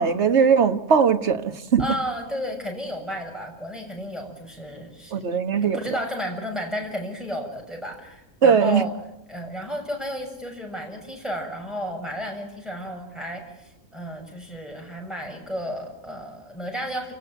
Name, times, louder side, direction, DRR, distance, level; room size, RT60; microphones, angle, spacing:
voice 1, 0.0-1.9 5.1-5.8 8.4-8.8, right 6 dB, 50° right, 1.4 m, -19 dB
voice 2, 1.8-5.3 5.6-8.9 9.3-17.1, equal, ahead, 6.9 m, -32 dB
28.0 x 18.0 x 9.3 m
omnidirectional pair, 1.6 m